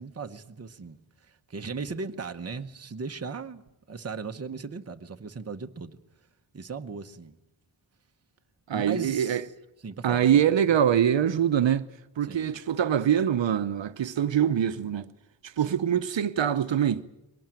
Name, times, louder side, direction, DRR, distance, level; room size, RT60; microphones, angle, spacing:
voice 1, 0.0-3.6 3.9-6.0 6.5-7.3 8.7-9.4 9.8-10.5 12.2-12.6 15.7-15.8, right 5 dB, 35° right, 0.9 m, -37 dB
voice 2, 8.7-9.4 10.0-11.9 12.2-15.1 15.4-17.0, right 9 dB, 70° right, 0.8 m, -24 dB
22.5 x 18.5 x 8.9 m
wide cardioid pair, 160°, 46 cm